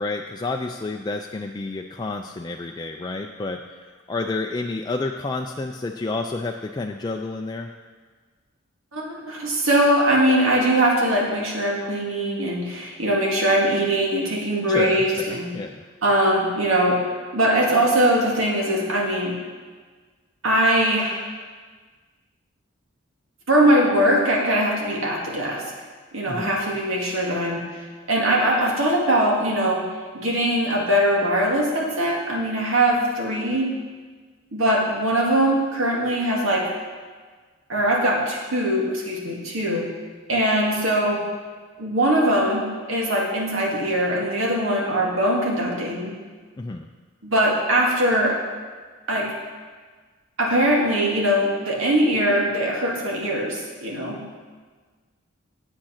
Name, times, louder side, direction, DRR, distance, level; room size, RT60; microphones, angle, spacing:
voice 1, 0.0-7.7 14.7-15.8 26.3-26.6 46.6-46.9, left 3 dB, 20° left, 2 dB, 0.3 m, -30 dB
voice 2, 8.9-15.5 16.0-17.0 17.3-19.4 20.4-21.3 23.5-25.6 26.1-27.6 28.1-29.8 30.1-33.7 34.5-36.7 37.7-39.9 40.3-41.2 41.8-46.2 47.2-48.4 49.1-49.3 50.4-54.2, right 1 dB, 90° right, -2 dB, 2.1 m, -21 dB
8.7 x 7.6 x 5.7 m, 1.5 s
head